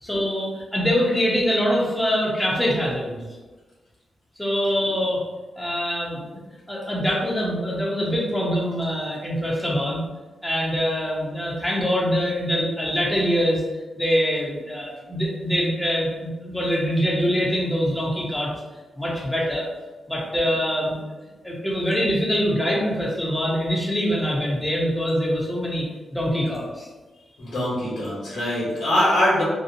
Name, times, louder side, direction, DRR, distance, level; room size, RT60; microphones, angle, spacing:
voice 1, 0.0-3.2 4.4-5.2 5.6-6.4 6.7-10.0 10.4-13.6 14.0-18.5 19.0-19.7 20.1-21.0 21.4-25.9 26.1-26.9, equal, 5° left, -4 dB, 0.6 m, -24 dB
voice 2, 27.4-29.4, left 1 dB, 80° left, -6 dB, 1.2 m, -22 dB
2.8 x 2.0 x 2.5 m, 1.2 s
cardioid pair, 75°, 0 cm